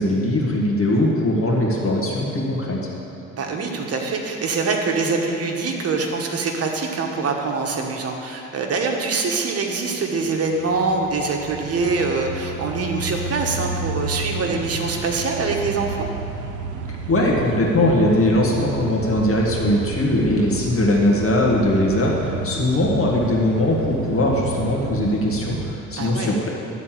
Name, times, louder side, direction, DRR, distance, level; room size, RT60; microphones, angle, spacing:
voice 1, 0.0-2.9 17.1-26.5, left 1 dB, 45° left, -2 dB, 1.9 m, -20 dB
voice 2, 3.4-16.1 26.0-26.4, right 4 dB, 50° right, 2 dB, 1.2 m, -24 dB
sound 1, 10.5-25.7, right 3 dB, 85° right, 0.8 m, -31 dB
12.0 x 4.1 x 7.5 m, 2.9 s
cardioid pair, 90°, 30 cm